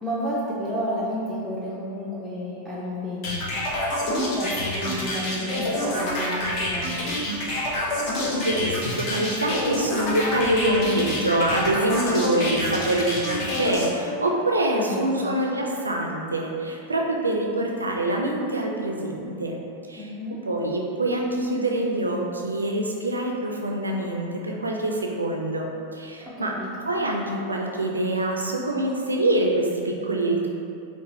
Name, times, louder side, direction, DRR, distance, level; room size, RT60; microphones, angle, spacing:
voice 1, 0.0-3.5 4.1-7.2 14.8-15.4 20.0-20.4 26.2-26.7, equal, 5° left, -9 dB, 0.5 m, -31 dB
sound 1, 3.2-13.9, left 1 dB, 45° left, 0.7 m, -27 dB
voice 2, 8.4-19.6 19.9-20.1 20.4-26.5 26.9-30.5, right 1 dB, 80° right, 0 dB, 0.3 m, -25 dB
3.9 x 2.3 x 2.7 m, 2.6 s
figure-of-eight pair, 90°, 0 cm